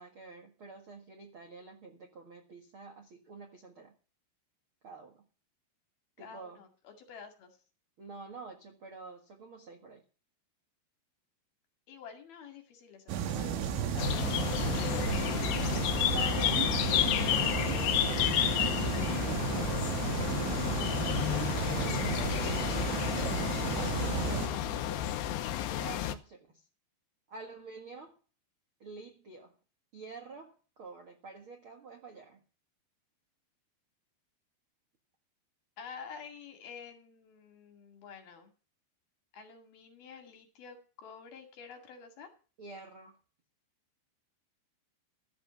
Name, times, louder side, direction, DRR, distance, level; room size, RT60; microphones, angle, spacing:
voice 1, 0.0-3.9 4.8-5.2 6.2-6.6 8.0-10.0 16.1-16.7 17.1-19.0 19.4-20.2 21.7-22.6 23.7-25.4 25.7-26.6 27.3-28.2 28.8-29.6 29.9-32.4 42.6-43.2, right 4 dB, 65° right, 3 dB, 1.3 m, -48 dB
voice 2, 6.2-7.5 11.9-15.7 16.0-16.4 35.8-38.5 39.3-42.3, left 6 dB, 60° left, 4 dB, 3.8 m, -50 dB
sound 1, 13.1-24.5, right 8 dB, 90° right, 4.1 m, -33 dB
sound 2, 14.0-26.1, left 11 dB, 75° left, 2.8 m, -31 dB
14.0 x 7.9 x 8.3 m, 0.36 s
omnidirectional pair, 5.4 m